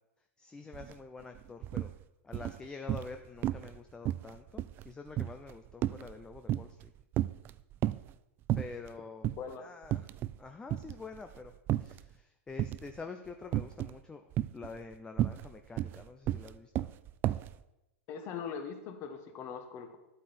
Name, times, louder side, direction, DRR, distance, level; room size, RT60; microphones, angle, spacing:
voice 1, 0.4-1.9 2.2-6.9 8.6-9.3 9.6-10.1 10.4-11.5 11.8-14.2 14.5-16.9, left 4 dB, 10° left, 6 dB, 0.6 m, -47 dB
sound 1, 0.7-0.9 1.2-1.9 2.3-3.2 3.4-3.8 4.1-6.9 7.1-8.1 8.5-8.9 9.2-9.4 9.8-10.4 10.7-12.1 12.6-13.0 13.5-14.0 14.3-17.5, right 14 dB, 30° right, 0.3 m, -33 dB
voice 2, 9.4-9.7 18.1-20.0, left 6 dB, 35° left, 7 dB, 1.4 m, -41 dB
11.5 x 8.6 x 4.4 m, 0.93 s
hypercardioid pair, 130°, 7 cm